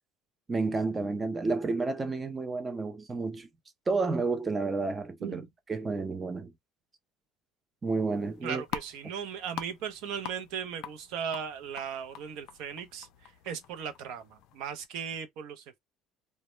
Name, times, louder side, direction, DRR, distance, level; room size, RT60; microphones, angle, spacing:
voice 1, 0.5-3.5 3.9-5.4 5.7-6.5 7.8-8.6, right 3 dB, 15° right, 0.4 m, -30 dB
sound 1, 8.1-14.9, left 10 dB, 65° left, 0.4 m, -45 dB
voice 2, 8.4-15.8, right 7 dB, 70° right, 0.6 m, -37 dB
2.1 x 2.0 x 3.0 m
cardioid pair, 150°, 0 cm